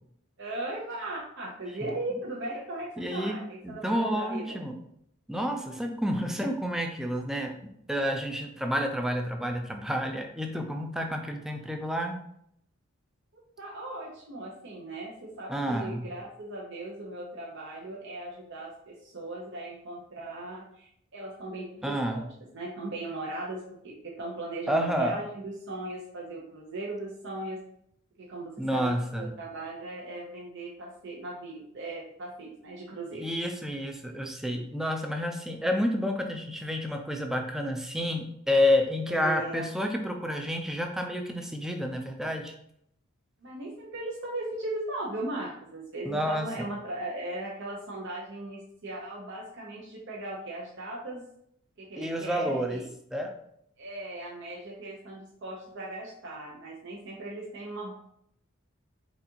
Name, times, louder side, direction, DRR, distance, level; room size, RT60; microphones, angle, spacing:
voice 1, 0.4-4.6 13.6-22.2 22.5-27.6 28.2-33.2 39.1-39.7 43.4-51.2 51.8-52.9 53.8-57.9, right 2 dB, 60° right, -3 dB, 0.8 m, -38 dB
voice 2, 3.0-3.4 3.6-4.7 5.3-7.5 7.9-12.2 15.5-16.1 21.8-22.2 24.7-25.2 28.6-29.3 33.1-42.5 46.1-46.7 52.0-52.8 53.1-53.3, equal, ahead, 3 dB, 0.4 m, -29 dB
4.1 x 3.5 x 2.8 m, 0.70 s
head